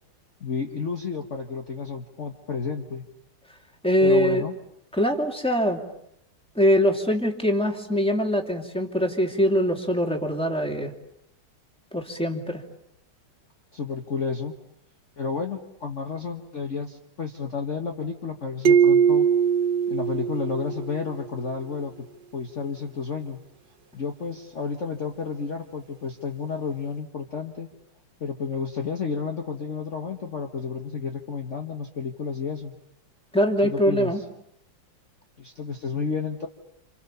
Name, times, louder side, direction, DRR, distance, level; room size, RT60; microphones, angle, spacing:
voice 1, 0.4-3.0 4.0-4.5 13.7-14.5 15.2-19.3 19.9-22.1 22.3-23.4 23.9-27.7 28.2-32.7 33.6-34.1 35.4-36.5, left 5 dB, 40° left, 3 dB, 1.7 m, -31 dB
voice 2, 3.8-4.4 4.9-5.8 6.5-10.9 11.9-12.6 33.3-34.2, equal, 5° left, 3 dB, 2.7 m, -23 dB
sound 1, 18.6-21.2, right 7 dB, 60° right, 2.4 m, -21 dB
29.0 x 28.5 x 6.9 m, 0.74 s
omnidirectional pair, 2.2 m